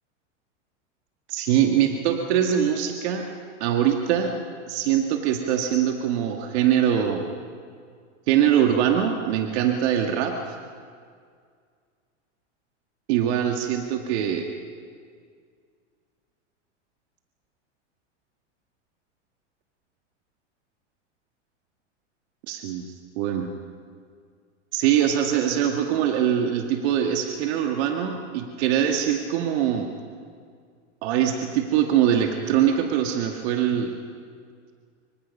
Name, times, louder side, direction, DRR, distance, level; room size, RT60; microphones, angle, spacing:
voice 1, 1.3-3.3 3.6-4.4 4.7-7.2 8.3-10.6 13.1-14.5 22.5-23.6 24.7-29.9 31.0-34.0, right 9 dB, 60° right, 3 dB, 2.1 m, -23 dB
27.5 x 25.0 x 5.5 m, 2.1 s
hypercardioid pair, 115°, 36 cm